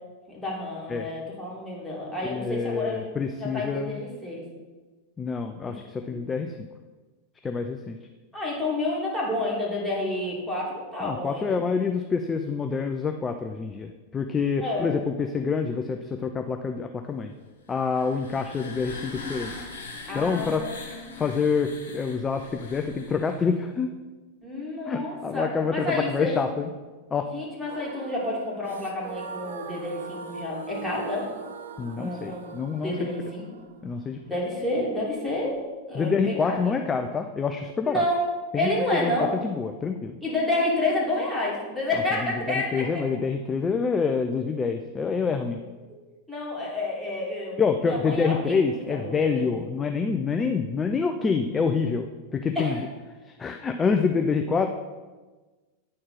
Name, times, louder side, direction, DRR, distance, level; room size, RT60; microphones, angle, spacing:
voice 1, 0.3-3.0 3.4-4.4 5.6-6.2 8.3-11.6 14.6-14.9 20.1-21.2 24.4-26.3 27.3-31.3 32.0-32.5 32.8-33.4 34.3-35.6 35.9-36.8 37.8-38.3 38.5-39.3 40.2-43.1 46.3-49.5 52.6-52.8, left 1 dB, ahead, -5 dB, 2.7 m, -29 dB
voice 2, 2.2-4.0 5.2-6.7 7.4-8.0 11.0-17.3 17.7-19.5 20.1-23.9 24.9-26.7 27.1-27.3 31.8-33.1 33.8-34.2 35.9-38.0 38.5-38.7 39.0-39.1 39.4-40.2 42.2-45.6 47.6-52.8 53.2-54.7, left 5 dB, 20° left, 6 dB, 0.4 m, -27 dB
sound 1, 17.7-23.5, left 4 dB, 70° left, 1.8 m, -41 dB
sound 2, 27.6-35.6, right 4 dB, 65° right, 0.6 m, -41 dB
8.9 x 4.3 x 5.7 m, 1.3 s
figure-of-eight pair, 90°, 0 cm